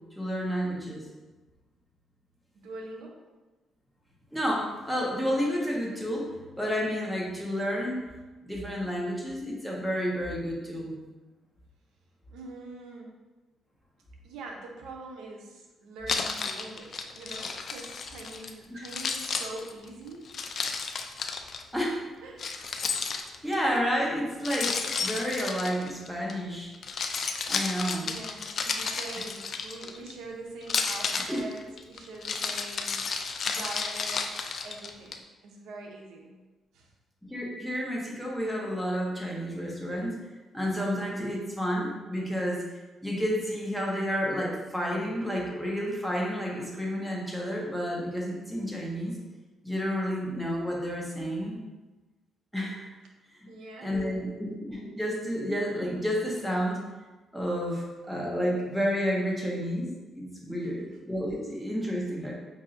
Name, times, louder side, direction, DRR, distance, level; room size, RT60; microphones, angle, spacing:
voice 1, 0.2-1.1 4.3-8.0 8.5-10.9 18.7-18.8 21.7-22.0 23.4-26.7 27.5-28.2 31.2-31.4 37.3-40.2 40.5-42.6 43.0-49.2 49.6-51.6 52.5-52.9 53.4-53.5 53.8-56.8 57.3-62.3, equal, ahead, -3 dB, 1.0 m, -30 dB
voice 2, 2.5-3.2 12.3-13.2 14.2-20.2 20.5-20.7 22.2-22.8 28.0-36.3 36.7-36.9 53.5-54.5, right 2 dB, 85° right, 1 dB, 0.6 m, -44 dB
Keys jangling, 16.1-18.5 18.8-21.6 22.4-23.6 24.4-26.3 26.7-30.1 30.6-35.1, left 5 dB, 50° left, 0.3 m, -32 dB
5.4 x 2.7 x 2.5 m, 1.2 s
cardioid pair, 90°, 0 cm